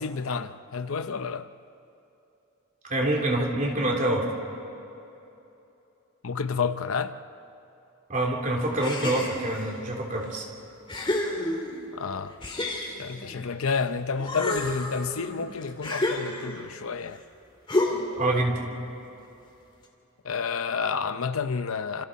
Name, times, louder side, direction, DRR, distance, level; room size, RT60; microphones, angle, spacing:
voice 1, 0.0-1.5 6.2-7.2 11.9-12.3 13.0-17.2 20.2-22.1, left 5 dB, 70° left, 0.7 m, -30 dB
voice 2, 2.9-4.3 8.1-10.4 18.2-18.6, right 1 dB, 35° right, 3.3 m, -26 dB
sound 1, 8.8-9.7 10.3-10.4 10.9-11.9 12.4-13.8 14.2-16.7 17.7-18.3, left 2 dB, 20° left, 2.5 m, -30 dB
29.5 x 27.0 x 4.2 m
head